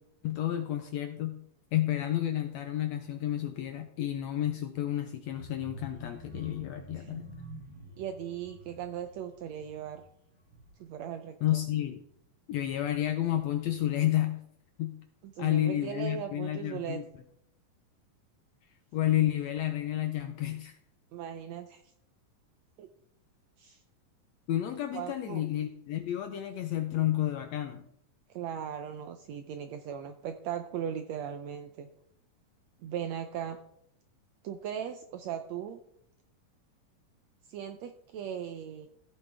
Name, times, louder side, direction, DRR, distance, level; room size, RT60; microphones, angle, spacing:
voice 1, 0.2-1.4 1.7-7.2 11.4-12.0 12.5-14.4 14.8-15.0 15.4-17.0 18.9-20.7 24.5-27.8, left 13 dB, 75° left, 7 dB, 1.6 m, -30 dB
sound 1, 5.2-11.0 11.4-11.6 11.9-12.0, equal, 40° right, 5.3 m, -48 dB
voice 2, 8.0-10.0 10.8-11.6 15.2-17.0 21.1-21.8 22.8-22.9 23.6-23.8 24.9-25.4 28.3-31.9 32.8-33.6 34.4-35.8 37.5-38.9, right 9 dB, 80° right, 7 dB, 1.6 m, -38 dB
15.5 x 8.4 x 3.4 m, 0.73 s
omnidirectional pair, 3.8 m